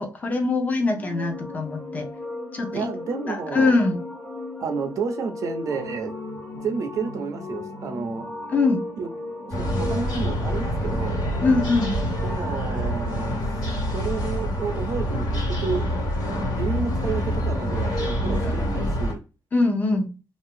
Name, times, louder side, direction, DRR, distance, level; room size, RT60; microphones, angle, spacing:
voice 1, 0.0-2.1 2.5-2.9 3.3-4.0 8.5-8.8 11.4-11.9 18.4-18.5 19.5-20.1, left 3 dB, 25° left, 0.6 m, -23 dB
sound 1, 0.9-18.9, left 2 dB, 45° left, 1.3 m, -36 dB
voice 2, 2.7-3.8 4.6-6.1 6.6-8.3 9.0-9.1 9.5-11.2 12.2-13.4 13.9-15.9 16.5-19.2, right 5 dB, 55° right, 0.5 m, -31 dB
sound 2, 9.5-19.1, equal, 80° left, 1.7 m, -26 dB
2.6 x 2.4 x 3.5 m
wide cardioid pair, 170°, 7 cm